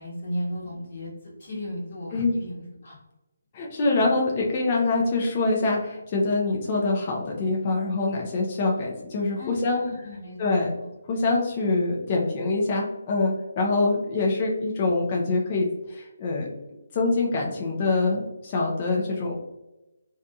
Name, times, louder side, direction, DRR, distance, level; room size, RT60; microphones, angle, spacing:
voice 1, 0.0-3.0 9.4-10.9, equal, 50° left, -4 dB, 1.3 m, -35 dB
voice 2, 3.5-9.8 10.4-10.7 11.1-16.5 16.9-19.4, left 3 dB, 30° left, -1 dB, 0.5 m, -25 dB
2.7 x 2.6 x 2.2 m, 0.97 s
hypercardioid pair, 160°, 0 cm